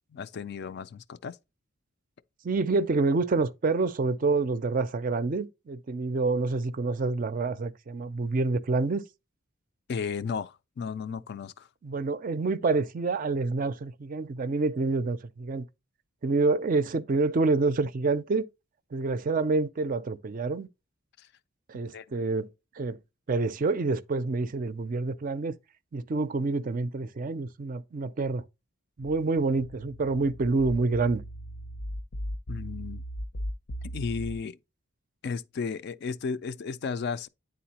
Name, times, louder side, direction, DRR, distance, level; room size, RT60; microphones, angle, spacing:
voice 1, 0.1-1.4 9.9-11.7 21.2-21.3 21.9-22.1 32.5-33.0 33.9-34.6 35.2-37.3, left 5 dB, 50° left, 0.3 m, -34 dB
voice 2, 2.4-9.0 11.8-15.6 16.2-18.4 18.9-20.7 21.7-22.5 22.8-23.0 23.3-25.6 25.9-28.4 29.0-31.3, right 3 dB, 40° right, 0.4 m, -27 dB
sound 1, 30.9-34.4, equal, 85° left, 0.6 m, -38 dB
9.4 x 3.9 x 2.8 m
head